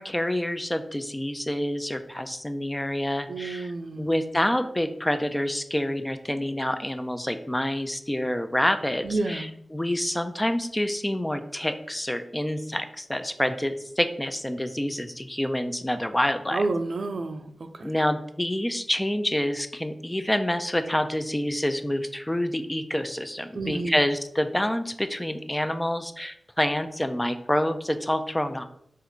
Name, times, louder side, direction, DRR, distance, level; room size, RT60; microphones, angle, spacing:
voice 1, 0.0-16.6 17.8-28.6, left 1 dB, 15° left, 8 dB, 0.4 m, -27 dB
voice 2, 3.3-4.1 9.0-9.5 16.5-17.9 23.5-24.0, right 3 dB, 70° right, 8 dB, 0.4 m, -30 dB
3.9 x 2.5 x 4.4 m, 0.70 s
cardioid pair, 45°, 0 cm